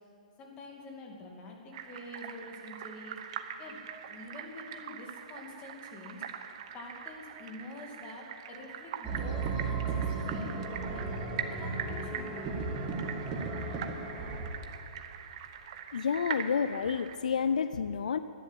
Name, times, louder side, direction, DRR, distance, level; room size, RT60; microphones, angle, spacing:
voice 1, 0.4-3.8 4.1-6.4 6.7-10.5 10.9-12.6, left 2 dB, 25° left, 0 dB, 2.5 m, -47 dB
sound 1, 1.7-17.2, right 8 dB, 50° right, 0.9 m, -43 dB
sound 2, 9.0-14.5, right 4 dB, 20° right, 1.7 m, -35 dB
voice 2, 15.9-18.2, left 6 dB, 80° left, 13 dB, 0.4 m, -30 dB
11.0 x 10.5 x 8.2 m, 2.8 s
hypercardioid pair, 140°, 4 cm